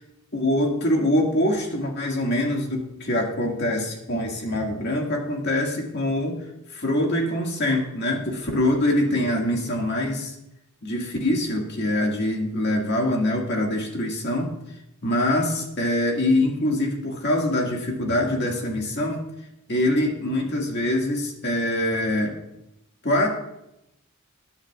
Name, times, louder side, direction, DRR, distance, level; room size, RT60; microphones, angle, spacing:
voice 1, 0.3-6.4 6.7-10.3 10.8-14.5 15.0-19.2 19.7-22.4 23.0-23.3, left 1 dB, 50° left, 0 dB, 2.0 m, -24 dB
21.0 x 9.5 x 2.4 m, 0.86 s
head